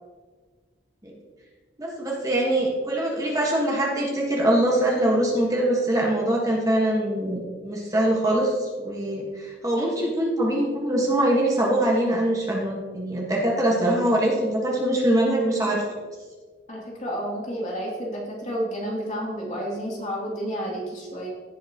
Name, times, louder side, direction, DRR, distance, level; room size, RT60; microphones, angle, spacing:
voice 1, 1.8-15.8, right 1 dB, 20° right, -3 dB, 1.4 m, -23 dB
voice 2, 16.7-21.3, equal, 40° left, -4 dB, 2.6 m, -30 dB
16.5 x 5.9 x 2.9 m, 1.4 s
head